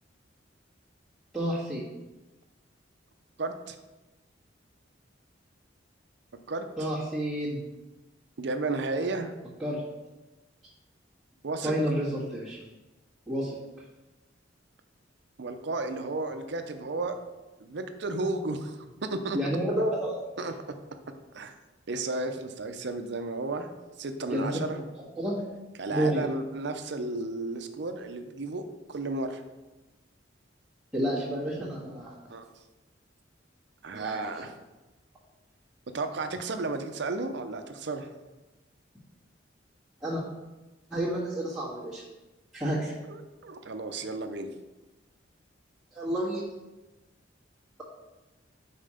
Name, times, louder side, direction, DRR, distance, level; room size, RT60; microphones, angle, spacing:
voice 1, 1.3-1.8 6.8-7.6 9.6-9.8 11.6-12.6 13.3-13.8 19.3-20.1 24.3-24.5 25.1-25.4 25.9-26.3 30.9-32.2 33.9-34.4 40.0-40.2 40.9-42.0 42.5-42.9 45.9-46.4, right 1 dB, ahead, -12 dB, 1.6 m, -30 dB
voice 2, 3.4-3.8 6.5-6.7 8.4-9.3 11.4-11.7 15.4-17.1 17.6-18.8 19.1-19.4 20.4-20.5 21.3-21.5 21.9-23.7 24.0-24.8 25.8-28.6 28.9-29.4 32.3-32.5 33.8-34.6 35.9-38.1 43.1-44.5, right 3 dB, 65° right, 8 dB, 0.6 m, -33 dB
5.6 x 4.3 x 5.0 m, 1.1 s
head